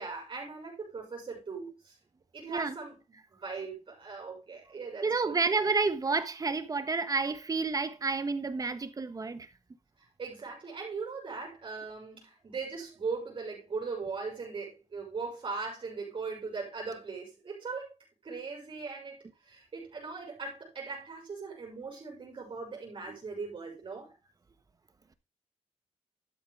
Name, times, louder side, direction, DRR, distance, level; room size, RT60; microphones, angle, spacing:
voice 1, 0.0-2.0 2.3-2.9 3.3-5.3 10.0-17.9 18.2-24.1, right 4 dB, 45° right, 5.8 m, -39 dB
voice 2, 5.0-9.5 23.1-23.2, right 4 dB, 30° right, 1.4 m, -30 dB
12.5 x 7.8 x 3.5 m
wide cardioid pair, 115°, 12 cm